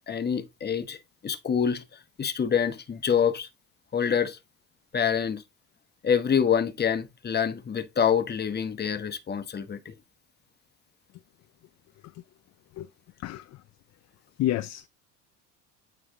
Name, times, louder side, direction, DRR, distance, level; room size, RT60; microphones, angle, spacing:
voice 1, 0.1-1.0 1.2-1.8 2.2-3.5 3.9-4.4 4.9-5.4 6.0-9.9, left 7 dB, 25° left, 1.1 m, -26 dB
voice 2, 14.4-14.9, left 13 dB, 45° left, 0.5 m, -28 dB
8.8 x 3.4 x 3.6 m
supercardioid pair, 90°, 39 cm